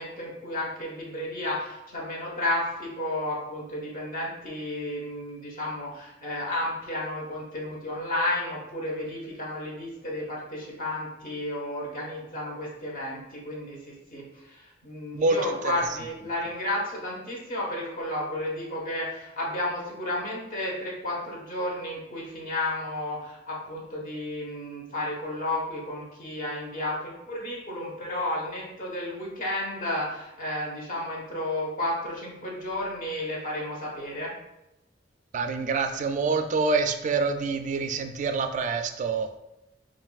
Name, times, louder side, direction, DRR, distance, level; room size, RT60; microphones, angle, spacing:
voice 1, 0.0-34.3, left 1 dB, 45° left, -3 dB, 1.2 m, -32 dB
voice 2, 15.1-15.7 35.3-39.3, right 4 dB, 40° right, 7 dB, 0.3 m, -26 dB
5.7 x 2.5 x 2.4 m, 0.91 s
head